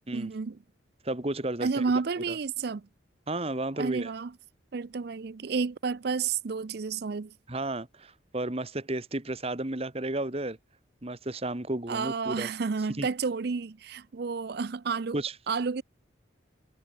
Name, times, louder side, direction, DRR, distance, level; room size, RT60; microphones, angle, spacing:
voice 1, 0.1-0.6 1.6-2.9 3.8-4.3 4.7-7.3 11.9-15.2 15.5-15.8, right 5 dB, 55° right, 0.5 m, -31 dB
voice 2, 1.0-1.8 2.3-2.4 3.3-4.1 7.5-10.6 11.0-12.5 13.0-13.1 15.1-15.3, right 2 dB, 30° right, 1.5 m, -32 dB
head